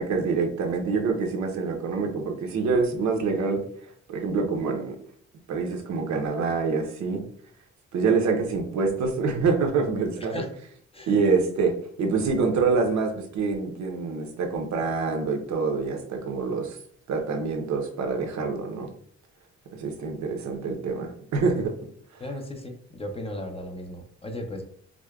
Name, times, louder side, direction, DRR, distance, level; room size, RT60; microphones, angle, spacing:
voice 1, 0.0-3.6 4.1-5.0 5.5-7.2 7.9-10.4 11.1-16.8 17.1-18.9 19.8-21.7 22.1-22.2, right 4 dB, 70° right, 3 dB, 0.7 m, -26 dB
voice 2, 10.2-10.5 10.9-11.2 22.2-24.6, left 1 dB, 20° left, 3 dB, 0.4 m, -36 dB
4.9 x 2.1 x 2.3 m, 0.62 s
wide cardioid pair, 150°, 29 cm